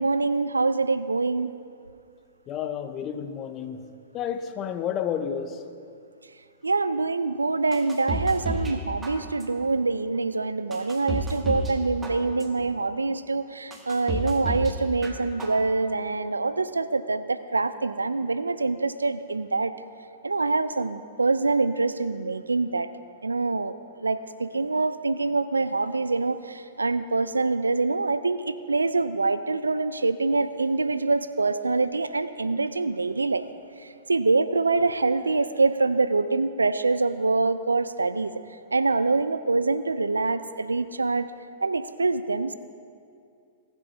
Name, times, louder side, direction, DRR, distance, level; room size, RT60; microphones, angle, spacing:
voice 1, 0.0-1.5 6.6-19.7 20.2-22.9 23.2-33.4 33.8-38.4 38.7-41.3 41.6-42.5, right 3 dB, 85° right, 13 dB, 0.4 m, -25 dB
voice 2, 2.5-3.9 4.1-5.6, left 8 dB, 30° left, 9 dB, 0.8 m, -31 dB
sound 1, 7.7-8.8 9.0-9.6 10.1-10.2 10.7-11.7 12.0-12.6 13.1-13.2 13.7-14.7 15.0-15.6 16.0-16.1, right 1 dB, 15° right, 1.5 m, -31 dB
18.5 x 7.4 x 3.9 m, 2.4 s
figure-of-eight pair, 105°, 0 cm